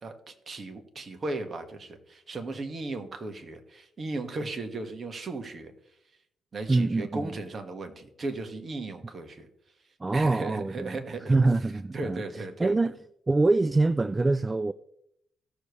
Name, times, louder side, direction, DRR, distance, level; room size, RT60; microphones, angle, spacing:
voice 1, 0.0-5.7 6.5-9.5 10.1-11.4 11.9-12.7, right 2 dB, 40° right, 1.7 m, -36 dB
voice 2, 6.7-7.3 10.0-11.0 11.3-12.2 12.6-13.0 13.3-14.7, right 2 dB, 20° right, 0.3 m, -24 dB
16.5 x 6.8 x 3.3 m
cardioid pair, 90°, 0 cm